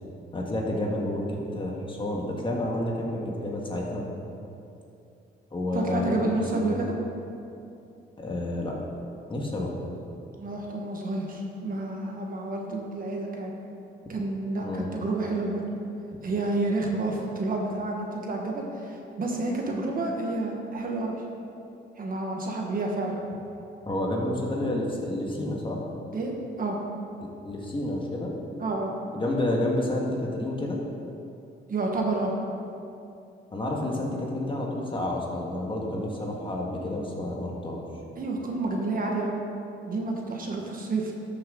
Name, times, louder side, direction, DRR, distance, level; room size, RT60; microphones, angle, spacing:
voice 1, 0.3-4.1 5.5-6.8 8.2-8.7 9.3-9.7 14.6-14.9 23.9-25.8 27.4-28.3 29.1-30.8 33.5-37.8, left 1 dB, 25° left, -1 dB, 1.7 m, -30 dB
voice 2, 5.7-6.9 10.4-13.5 14.1-15.6 16.2-21.1 22.0-23.2 26.1-26.8 28.6-28.9 31.7-32.3 38.2-39.4 39.8-41.1, right 2 dB, 45° right, 0 dB, 1.5 m, -29 dB
13.0 x 6.4 x 3.9 m, 2.7 s
cardioid pair, 90°, 20 cm